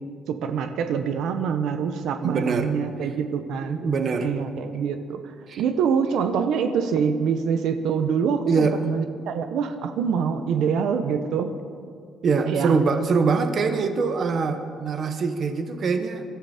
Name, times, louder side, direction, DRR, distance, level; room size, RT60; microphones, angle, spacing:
voice 1, 0.3-3.8 4.2-5.2 5.6-11.6 12.5-12.8, right 6 dB, 65° right, 8 dB, 0.9 m, -25 dB
voice 2, 2.2-2.7 3.8-4.3 5.5-5.6 8.5-8.8 12.2-16.2, right 4 dB, 35° right, 7 dB, 1.0 m, -23 dB
25.0 x 13.0 x 4.3 m, 2.2 s
cardioid pair, 180°, 0 cm